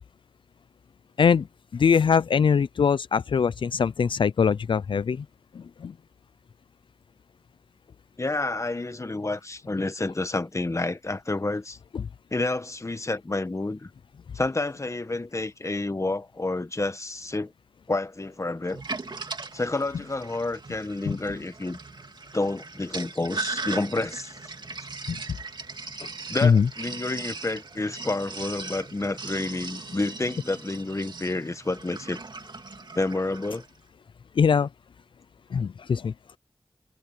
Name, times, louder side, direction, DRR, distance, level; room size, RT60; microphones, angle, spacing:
voice 1, 1.7-5.2 5.6-5.9 11.9-12.0 21.1-21.2 25.1-25.2 26.0-26.1 26.4-26.7 34.4-34.7 35.5-36.1, left 6 dB, 75° left, 0.4 m, -22 dB
voice 2, 8.2-11.8 12.3-13.9 14.3-17.5 17.9-18.8 19.5-21.8 22.3-24.4 26.3-32.2 32.9-33.6, left 2 dB, 35° left, 1.4 m, -29 dB
Sink (filling or washing), 18.7-33.7, right 3 dB, 60° right, 2.6 m, -38 dB
cardioid pair, 50°, 9 cm